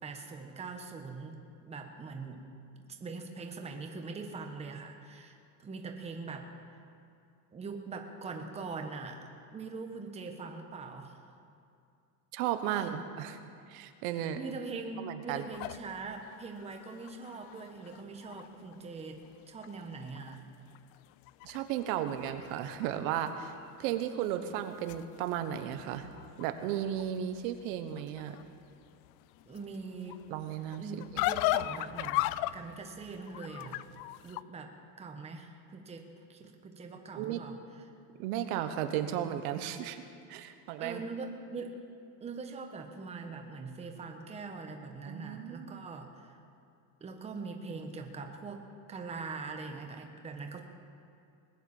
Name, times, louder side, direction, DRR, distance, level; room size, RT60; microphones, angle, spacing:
voice 1, 0.0-2.4 2.9-6.5 7.5-11.2 12.7-13.0 14.3-19.2 19.5-20.4 29.4-30.2 30.8-33.8 34.2-34.7 35.0-37.6 40.8-41.8 42.2-46.4 47.0-48.6 48.9-50.6, right 4 dB, 15° right, 4 dB, 1.1 m, -42 dB
voice 2, 12.3-13.4 13.7-14.4 15.0-15.5 21.4-23.5 23.8-26.1 26.4-28.4 30.3-30.9 31.1-31.2 37.1-37.4 38.2-40.0 40.3-41.0 45.1-45.8, right 10 dB, 75° right, 9 dB, 1.2 m, -34 dB
sound 1, 15.5-18.8 19.2-19.3 19.6-20.4 20.7-23.0 23.3-23.8 24.4-34.4, left 16 dB, 75° left, 0.6 m, -38 dB
20.0 x 9.4 x 7.1 m, 2.5 s
cardioid pair, 160°, 43 cm